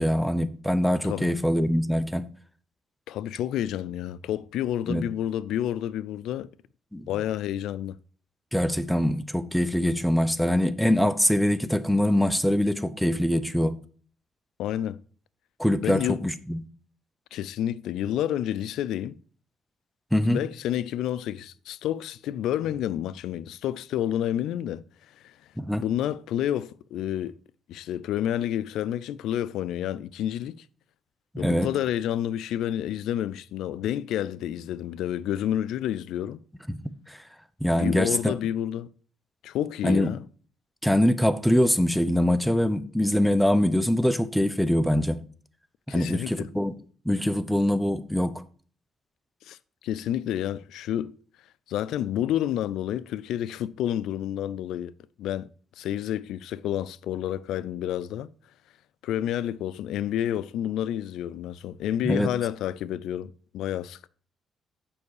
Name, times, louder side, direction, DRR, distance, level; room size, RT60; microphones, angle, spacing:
voice 1, 0.0-2.3 4.9-5.0 6.9-7.0 8.5-13.8 15.6-16.6 20.1-20.4 25.6-25.8 31.3-31.7 36.7-36.8 37.1-37.2 37.6-38.3 39.8-40.1 40.8-45.2 45.9-46.7 47.1-48.4 62.0-62.3, left 1 dB, ahead, 0.6 m, -23 dB
voice 2, 3.1-6.5 7.1-8.0 14.6-15.0 15.8-16.2 17.3-19.2 20.3-24.8 25.2-25.3 25.8-27.4 27.7-30.6 31.4-36.4 37.7-38.9 39.4-40.2 45.9-46.5 49.5-49.6 49.8-51.1 51.7-54.9 55.2-55.5 55.8-58.3 59.0-64.1, left 11 dB, 85° left, 0.3 m, -29 dB
7.1 x 5.4 x 4.8 m
cardioid pair, 90°, 0 cm